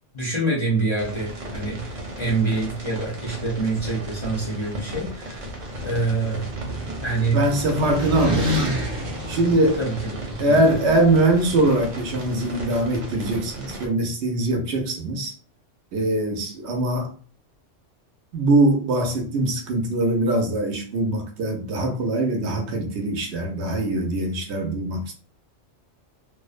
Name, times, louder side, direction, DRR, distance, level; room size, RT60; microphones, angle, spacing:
voice 1, 0.1-5.5 5.8-6.5 7.0-7.4 9.8-10.6, right 3 dB, 40° left, -4 dB, 0.4 m, -26 dB
sound 1, 1.0-13.9, right 1 dB, 90° right, 1.1 m, -35 dB
sound 2, 5.4-10.4, equal, 40° right, 0.4 m, -29 dB
voice 2, 7.3-8.8 9.3-9.8 10.4-15.3 15.9-17.1 18.3-25.1, right 2 dB, 70° right, 3 dB, 0.8 m, -22 dB
2.5 x 2.1 x 2.4 m, 0.41 s
omnidirectional pair, 1.3 m